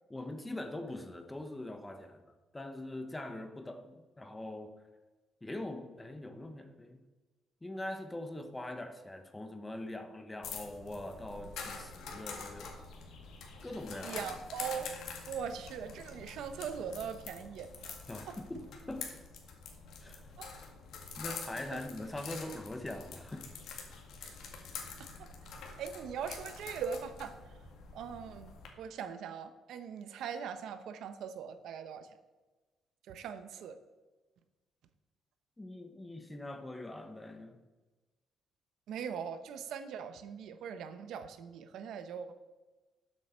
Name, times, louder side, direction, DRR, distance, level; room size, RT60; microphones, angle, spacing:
voice 1, 0.1-4.7 5.4-7.0 7.6-12.8 13.6-14.4 18.1-19.2 20.0-20.3 21.2-23.5 35.6-37.6, left 1 dB, 10° left, 7 dB, 1.0 m, -43 dB
sound 1, 10.4-28.7, left 5 dB, 70° left, 2.0 m, -46 dB
voice 2, 14.0-15.0 15.3-18.4 20.4-20.5 21.7-21.8 24.2-24.4 25.0-25.3 25.8-27.3 27.9-32.1 33.1-33.8 38.9-42.3, right 7 dB, 70° right, 10 dB, 0.9 m, -41 dB
12.5 x 7.7 x 4.5 m, 1.2 s
cardioid pair, 140°, 0 cm